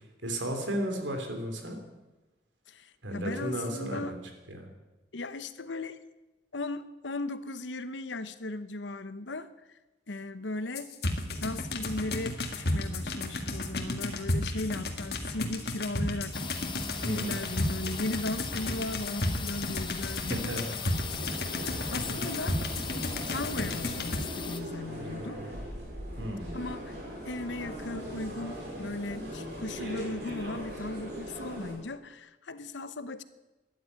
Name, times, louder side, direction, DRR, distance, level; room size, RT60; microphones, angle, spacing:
voice 1, 0.2-1.8 3.0-4.2 4.5-4.7 17.0-17.4 20.3-20.7 26.2-26.6, right 1 dB, 90° right, 5 dB, 3.2 m, -34 dB
voice 2, 2.7-4.2 5.1-6.0 6.5-9.5 10.1-10.9 11.4-16.4 17.0-20.4 21.9-22.6 23.3-25.4 26.5-27.0 27.2-33.2, left 2 dB, 85° left, 13 dB, 0.9 m, -37 dB
sound 1, 10.8-24.2, left 1 dB, 55° left, 1.8 m, -33 dB
sound 2, 16.3-24.6, left 6 dB, 25° left, 1.0 m, -39 dB
sound 3, 20.7-31.7, equal, 60° right, 6.1 m, -40 dB
13.0 x 11.0 x 9.6 m, 1.1 s
head